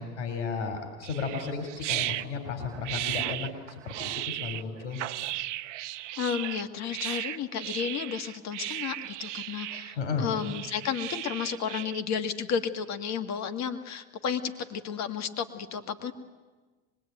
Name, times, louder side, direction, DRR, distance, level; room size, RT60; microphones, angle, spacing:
voice 1, 0.0-3.5 3.9-5.0 10.0-10.3, left 5 dB, 80° left, 4 dB, 3.7 m, -33 dB
sound 1, 1.0-12.0, right 15 dB, 85° right, 0.8 m, -36 dB
voice 2, 6.2-16.1, left 7 dB, 50° left, 9 dB, 2.0 m, -32 dB
24.0 x 21.0 x 9.3 m, 1.3 s
hypercardioid pair, 95°, 35 cm